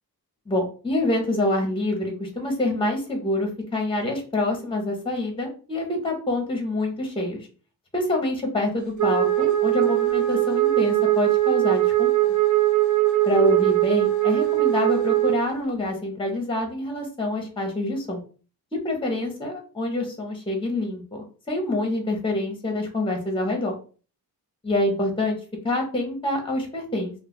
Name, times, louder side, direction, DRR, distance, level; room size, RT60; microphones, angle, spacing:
voice 1, 0.5-7.5 7.9-12.1 13.3-18.2 18.7-23.8 24.6-25.4 25.6-27.1, left 1 dB, 15° left, 2 dB, 0.7 m, -26 dB
Wind instrument woodwind instrument, 9.0-15.4, right 15 dB, 50° right, 0.5 m, -21 dB
2.2 x 2.0 x 3.4 m, 0.38 s
wide cardioid pair, 95°, 39 cm